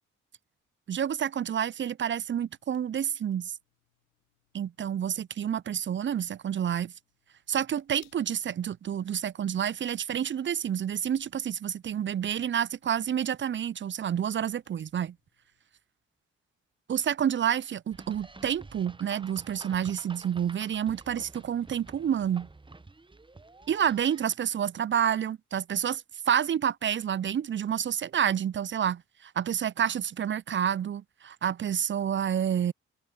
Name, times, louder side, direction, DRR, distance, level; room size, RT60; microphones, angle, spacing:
voice 1, 0.9-3.5 4.5-6.9 7.5-15.1 16.9-22.5 23.7-32.7, right 9 dB, 35° right, 0.5 m, -29 dB
sound 1, 2.1-15.6, left 25 dB, 85° left, 6.0 m, -71 dB
sound 2, 17.9-24.3, right 3 dB, 15° right, 1.1 m, -50 dB
hypercardioid pair, 40°, 36 cm